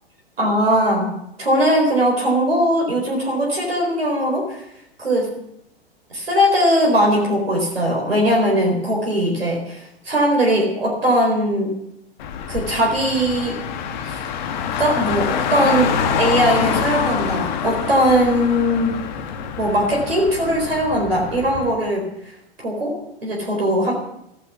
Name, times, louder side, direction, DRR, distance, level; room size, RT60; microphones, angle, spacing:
voice 1, 0.4-1.1 1.4-4.6 5.0-5.3 6.1-11.8 12.5-13.6 14.1-14.2 14.8-19.0 19.6-22.0 22.6-23.9, equal, 75° right, 0 dB, 4.3 m, -20 dB
Car, 12.2-21.7, left 7 dB, 50° left, 1.7 m, -25 dB
15.5 x 11.5 x 7.1 m, 0.80 s
figure-of-eight pair, 100°, 31 cm